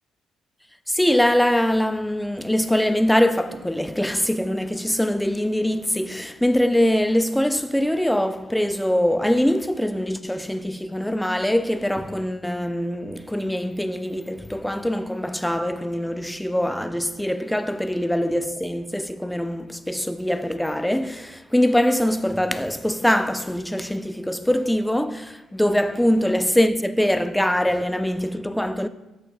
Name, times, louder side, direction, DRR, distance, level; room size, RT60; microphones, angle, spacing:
voice 1, 0.9-28.9, equal, 5° left, 0.4 m, -23 dB
11.0 x 6.3 x 2.3 m
cardioid pair, 90°, 0 cm